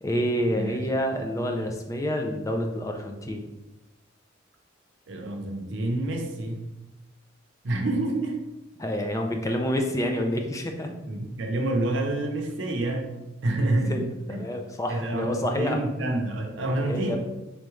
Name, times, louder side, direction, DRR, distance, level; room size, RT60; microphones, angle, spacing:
voice 1, 0.0-3.4 8.8-10.9 13.9-14.0 14.3-15.8 16.6-17.2, equal, 15° left, 3 dB, 0.4 m, -28 dB
voice 2, 0.5-0.9 5.1-6.7 7.6-8.4 11.1-13.2 13.4-14.4 14.9-17.2, right 2 dB, 75° right, 2 dB, 0.7 m, -28 dB
3.9 x 3.5 x 3.1 m, 0.98 s
head